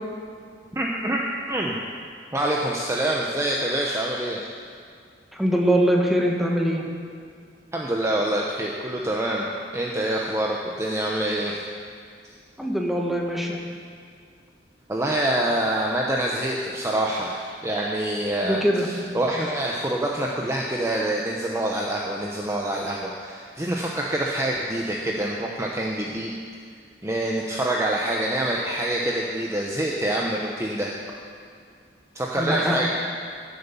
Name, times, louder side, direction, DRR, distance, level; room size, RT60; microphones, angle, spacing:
voice 1, 0.7-1.2 1.5-1.8 2.3-4.4 7.7-9.5 9.7-11.6 14.9-26.3 27.0-30.9 32.1-32.9, right 1 dB, 15° right, -2 dB, 0.9 m, -26 dB
voice 2, 5.3-6.8 12.6-13.6 18.4-18.9 32.4-32.9, equal, ahead, -1 dB, 1.6 m, -22 dB
15.5 x 8.1 x 7.0 m, 2.2 s
head